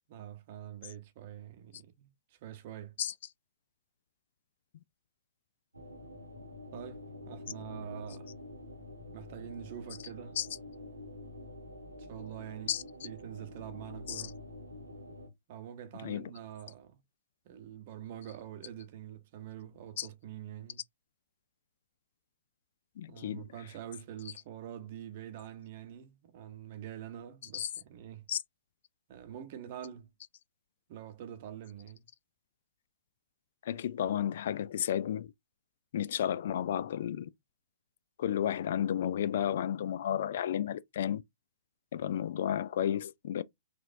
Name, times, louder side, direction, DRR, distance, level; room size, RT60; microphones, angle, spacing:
voice 1, 0.1-2.1 2.4-2.9 6.7-8.3 9.1-10.4 12.1-12.7 13.0-14.4 15.5-17.0 17.5-20.8 23.1-28.3 29.1-30.1 30.9-32.0, right 10 dB, 45° right, 0.7 m, -45 dB
sound 1, 5.7-15.3, left 1 dB, 90° right, 1.1 m, -47 dB
voice 2, 15.9-16.3 20.0-20.1 23.0-23.8 24.2-24.3 27.5-27.7 28.3-28.4 33.6-35.3 35.9-37.3 38.2-41.2 41.9-43.4, left 10 dB, 55° left, 0.3 m, -32 dB
3.9 x 2.6 x 2.6 m
figure-of-eight pair, 120°, 0 cm